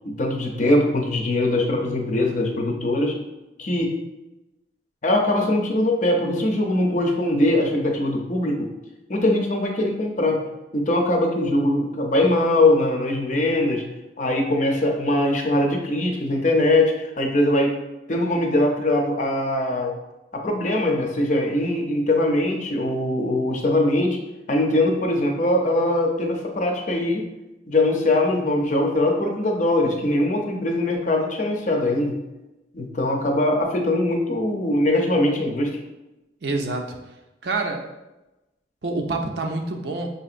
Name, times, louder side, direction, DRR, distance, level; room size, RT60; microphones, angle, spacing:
voice 1, 0.0-3.2 3.6-3.9 5.0-8.7 9.1-10.4 10.7-13.8 14.2-17.8 18.1-19.9 20.3-24.2 24.5-27.2 27.7-32.2 32.7-35.8, left 1 dB, 40° left, 1 dB, 0.6 m, -21 dB
voice 2, 36.4-37.0 37.4-37.9 38.8-40.1, right 3 dB, 60° right, 2 dB, 0.5 m, -27 dB
6.1 x 2.8 x 2.5 m, 1.0 s
head